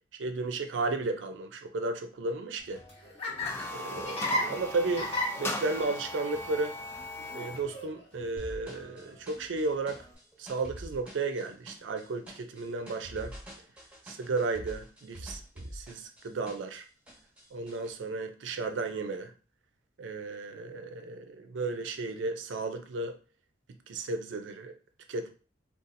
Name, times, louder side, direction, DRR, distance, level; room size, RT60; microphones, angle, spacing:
voice 1, 0.2-2.8 3.7-5.1 5.4-6.7 7.3-10.0 10.4-13.3 14.1-16.9 17.5-19.3 20.0-23.2 23.9-24.7 25.1-25.3, right 3 dB, 85° right, 7 dB, 0.4 m, -34 dB
Laughter, 2.6-10.1, left 1 dB, 35° left, 0.9 m, -37 dB
sound 1, 3.3-7.7, left 1 dB, 15° left, 0.3 m, -38 dB
sound 2, 8.4-16.8 17.1-17.9, equal, 5° right, 1.0 m, -46 dB
3.9 x 2.3 x 2.5 m, 0.37 s
head